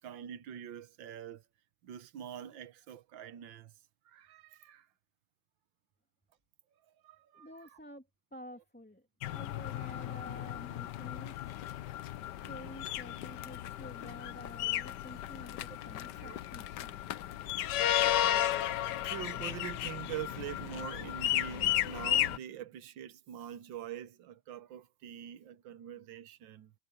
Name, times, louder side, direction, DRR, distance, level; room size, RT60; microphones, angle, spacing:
voice 1, 0.0-1.4 1.8-3.7 4.1-4.9 7.0-7.7 16.2-16.4 19.0-26.7, right 10 dB, 85° right, 1.7 m, -44 dB
voice 2, 7.3-11.6 12.4-17.0, equal, 5° left, 2.5 m, -50 dB
sound 1, 9.2-22.4, left 12 dB, 75° left, 1.3 m, -34 dB
omnidirectional pair, 2.0 m